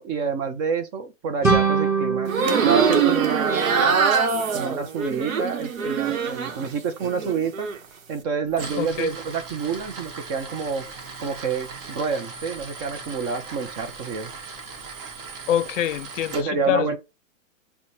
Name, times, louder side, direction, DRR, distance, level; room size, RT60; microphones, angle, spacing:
voice 1, 0.0-2.3 2.6-4.0 4.5-7.7 8.1-10.9 11.2-14.3 16.3-17.0, right 5 dB, 25° right, 0.5 m, -28 dB
sound 1, 1.4-4.2, right 5 dB, 5° right, 0.8 m, -24 dB
sound 2, 2.3-6.7 7.0-7.8, right 6 dB, 85° right, 0.9 m, -23 dB
Tools, 8.5-16.4, right 4 dB, 45° right, 1.1 m, -39 dB
voice 2, 8.8-9.1 15.5-16.4 16.7-17.0, left 11 dB, 70° left, 0.5 m, -24 dB
5.7 x 2.2 x 2.7 m
hypercardioid pair, 135°, 39 cm